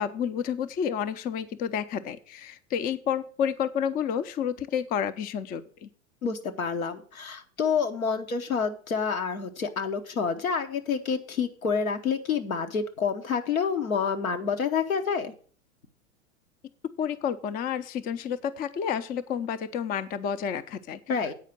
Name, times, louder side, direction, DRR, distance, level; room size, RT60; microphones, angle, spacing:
voice 1, 0.0-5.9 17.0-21.3, left 8 dB, 20° left, 12 dB, 0.5 m, -30 dB
voice 2, 6.2-15.3 21.1-21.3, left 6 dB, 80° left, 5 dB, 1.2 m, -28 dB
8.4 x 5.0 x 7.6 m, 0.43 s
figure-of-eight pair, 90°, 41 cm